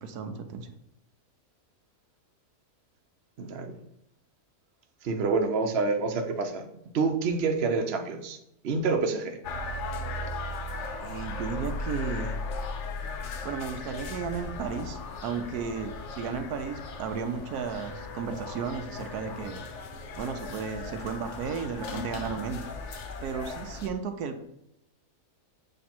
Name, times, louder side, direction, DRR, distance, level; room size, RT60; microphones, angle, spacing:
voice 1, 0.0-0.7 11.0-12.4 13.4-19.6 20.2-22.6 23.2-24.4, right 6 dB, 90° right, 7 dB, 1.2 m, -34 dB
voice 2, 3.4-3.8 5.0-6.7 6.9-8.4 8.6-9.4, right 4 dB, 50° right, 4 dB, 0.9 m, -27 dB
sound 1, 9.4-23.9, left 3 dB, 60° left, 0.9 m, -37 dB
7.6 x 3.3 x 4.3 m, 0.81 s
omnidirectional pair, 1.6 m